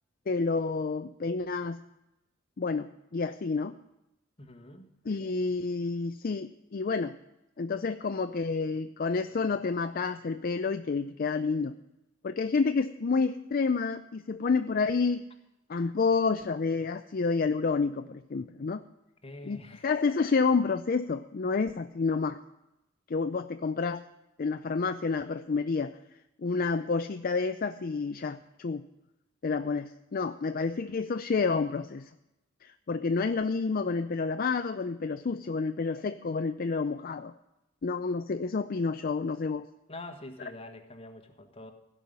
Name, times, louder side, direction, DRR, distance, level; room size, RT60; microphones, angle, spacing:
voice 1, 0.3-1.8 2.6-3.7 5.1-7.2 7.6-11.8 12.2-15.2 15.7-18.8 19.4-22.4 23.1-24.0 24.4-25.9 26.4-28.8 29.4-32.1 32.6-37.3 37.8-39.7, left 4 dB, 50° left, 8 dB, 0.5 m, -29 dB
voice 2, 4.4-4.9 19.2-19.9 39.9-41.7, left 2 dB, 30° left, 5 dB, 1.5 m, -45 dB
16.5 x 5.6 x 9.3 m, 0.91 s
head